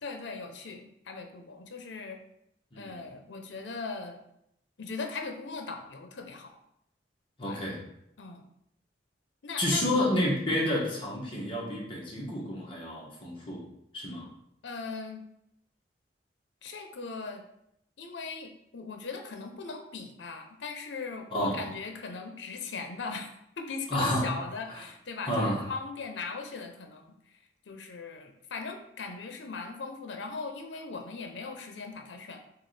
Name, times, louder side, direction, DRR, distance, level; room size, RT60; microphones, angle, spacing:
voice 1, 0.0-2.2 2.8-4.2 4.8-6.5 7.4-7.6 8.2-8.5 9.4-10.0 14.6-15.2 16.6-17.4 18.0-23.3 23.6-27.1 27.7-32.4, left 4 dB, 85° left, 4 dB, 0.7 m, -39 dB
voice 2, 2.7-3.0 7.4-7.8 9.6-13.6 13.9-14.3 21.3-21.7 23.9-24.3 24.7-24.8 25.3-25.7, left 1 dB, 30° left, -4 dB, 1.3 m, -30 dB
6.6 x 2.5 x 3.3 m, 0.77 s
head